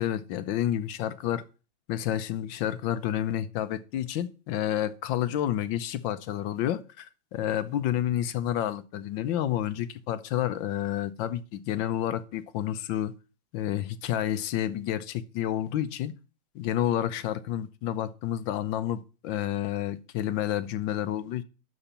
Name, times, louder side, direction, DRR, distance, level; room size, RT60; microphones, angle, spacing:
voice 1, 0.0-1.4 1.9-13.1 13.5-16.1 16.5-21.4, left 11 dB, 75° left, 1.3 m, -30 dB
12.0 x 4.1 x 5.7 m
omnidirectional pair, 2.2 m